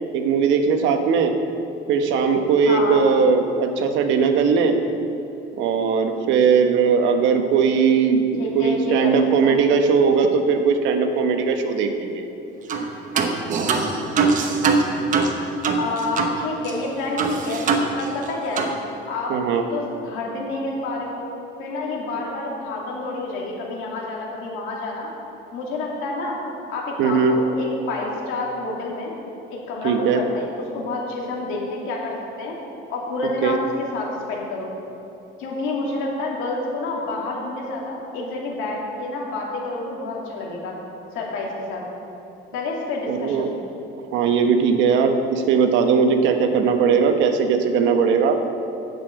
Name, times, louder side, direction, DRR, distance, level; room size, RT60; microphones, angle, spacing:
voice 1, 0.1-1.3 1.9-4.8 5.6-12.3 19.3-19.6 27.0-27.3 29.8-30.2 33.4-33.6 43.1-43.5 44.1-48.4, right 5 dB, 70° right, 5 dB, 1.1 m, -19 dB
voice 2, 2.7-3.0 8.4-9.1 9.4-9.6 15.8-18.7 19.1-21.2 21.6-25.1 25.5-26.4 26.7-29.1 29.5-32.5 32.9-34.7 35.4-40.8 41.1-41.8 42.5-43.5, left 2 dB, 80° left, -2 dB, 2.5 m, -29 dB
sound 1, 12.7-12.9 13.2-16.4 16.6-16.7 17.2-18.3 18.6-18.8, right 4 dB, 40° right, 1.0 m, -22 dB
9.5 x 7.1 x 7.9 m, 2.8 s
cardioid pair, 155°, 20 cm